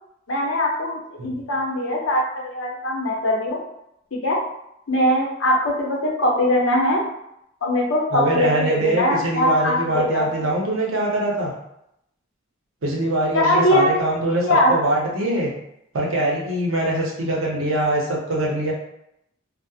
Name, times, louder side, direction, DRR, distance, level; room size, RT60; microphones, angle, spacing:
voice 1, 0.3-0.9 1.2-3.6 4.1-4.4 4.9-7.0 7.6-10.4 13.3-14.0 14.4-14.7, left 1 dB, 70° left, -2 dB, 0.6 m, -21 dB
voice 2, 8.1-11.5 12.8-15.5 15.9-18.7, right 1 dB, 70° right, -2 dB, 0.6 m, -23 dB
2.7 x 2.0 x 2.3 m, 0.79 s
head